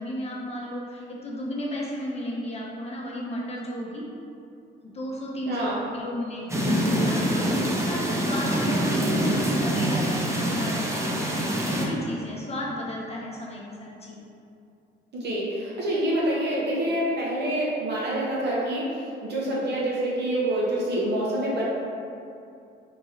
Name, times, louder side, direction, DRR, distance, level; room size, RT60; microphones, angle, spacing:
voice 1, 0.0-4.0 4.8-14.2, left 1 dB, 30° left, -4 dB, 0.8 m, -34 dB
voice 2, 5.4-5.8 15.1-18.9 19.2-21.6, right 1 dB, 60° right, -6 dB, 1.0 m, -26 dB
sound 1, 6.5-11.9, equal, 15° right, 0.5 m, -25 dB
3.0 x 2.8 x 3.8 m, 2.5 s
cardioid pair, 90°, 20 cm